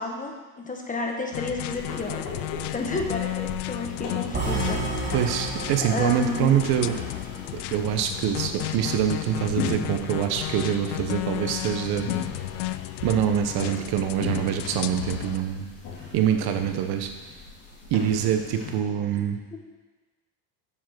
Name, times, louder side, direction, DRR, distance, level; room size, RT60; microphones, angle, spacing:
voice 1, 0.0-2.3 2.6-5.1 5.8-6.5, left 3 dB, 20° left, 2 dB, 1.5 m, -31 dB
sound 1, 1.3-15.4, left 16 dB, 85° left, 0.5 m, -34 dB
sound 2, 1.7-18.8, left 4 dB, 50° left, 3.2 m, -39 dB
sound 3, 4.3-8.5, right 3 dB, 25° right, 2.6 m, -32 dB
voice 2, 5.1-7.0 7.7-12.1 13.0-15.7 16.1-17.1 17.9-19.4, right 9 dB, 60° right, 6 dB, 1.0 m, -25 dB
7.5 x 7.2 x 6.1 m, 1.3 s
supercardioid pair, 115°, 42 cm